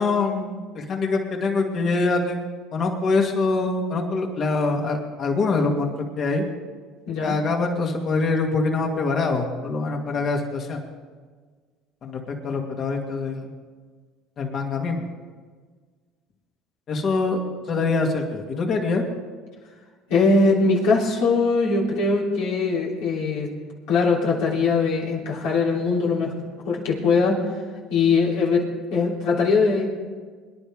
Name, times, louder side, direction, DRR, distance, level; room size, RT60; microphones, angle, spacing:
voice 1, 0.0-2.4 2.7-5.9 6.2-6.4 7.2-10.8 12.0-13.5 14.4-15.1 16.9-17.4 17.7-19.0, left 3 dB, 50° left, 2 dB, 2.5 m, -24 dB
voice 2, 20.1-23.5 23.9-26.3 26.6-27.3 27.9-28.6 28.9-29.8, left 4 dB, 75° left, -3 dB, 3.4 m, -21 dB
24.0 x 10.5 x 3.7 m, 1.5 s
hypercardioid pair, 80°, 0 cm